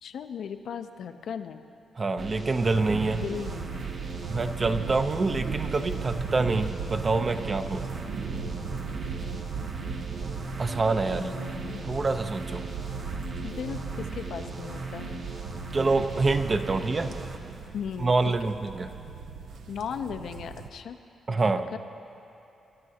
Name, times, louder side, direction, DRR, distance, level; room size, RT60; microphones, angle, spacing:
voice 1, 0.0-1.6 3.1-3.8 11.1-11.8 13.4-15.2 17.7-18.3 19.7-21.0 21.3-21.8, left 7 dB, 75° left, 8 dB, 0.6 m, -37 dB
voice 2, 2.0-3.2 4.3-7.9 10.6-11.3 11.9-12.6 15.7-17.1 18.0-18.9 21.3-21.7, right 3 dB, 35° right, 8 dB, 0.7 m, -26 dB
sound 1, 2.2-17.7, right 3 dB, 55° right, 1.1 m, -38 dB
sound 2, 2.7-20.7, right 5 dB, 75° right, 0.7 m, -38 dB
25.5 x 12.0 x 2.9 m, 2.8 s
cardioid pair, 90°, 0 cm